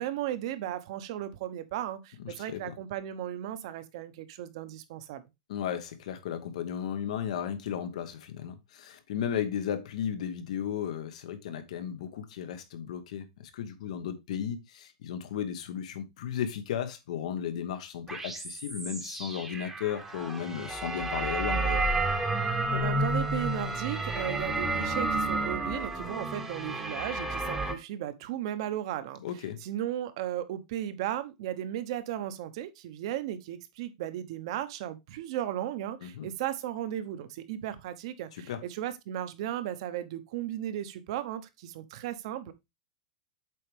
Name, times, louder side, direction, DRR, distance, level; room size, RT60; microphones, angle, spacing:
voice 1, 0.0-5.2 22.7-29.2 29.6-42.5, right 12 dB, 50° right, 0.9 m, -35 dB
voice 2, 2.2-2.8 5.5-21.9 29.2-29.6 36.0-36.3 38.3-38.6, left 9 dB, 65° left, 1.3 m, -35 dB
sound 1, 18.1-27.7, right 2 dB, 5° right, 1.0 m, -31 dB
7.7 x 4.8 x 3.4 m
supercardioid pair, 165°, 4 cm